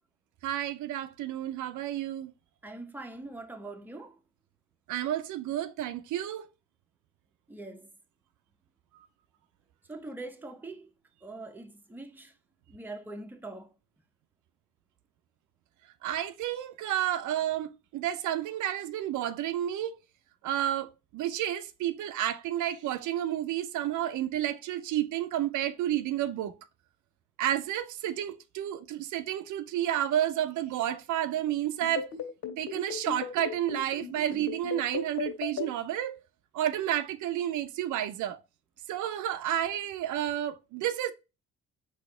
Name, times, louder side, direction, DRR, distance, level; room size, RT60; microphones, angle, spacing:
voice 1, 0.4-2.3 4.9-6.5 16.0-20.0 20.4-26.5 27.4-32.1 32.6-36.2 36.5-38.4 38.9-41.1, right 11 dB, 80° right, 0.5 m, -31 dB
voice 2, 2.6-4.2 7.5-7.9 9.9-10.9 11.2-12.3 12.7-13.7, right 2 dB, 5° right, 0.7 m, -43 dB
sound 1, 31.8-35.7, left 8 dB, 65° left, 2.1 m, -35 dB
4.1 x 2.9 x 4.3 m
cardioid pair, 90°, 30 cm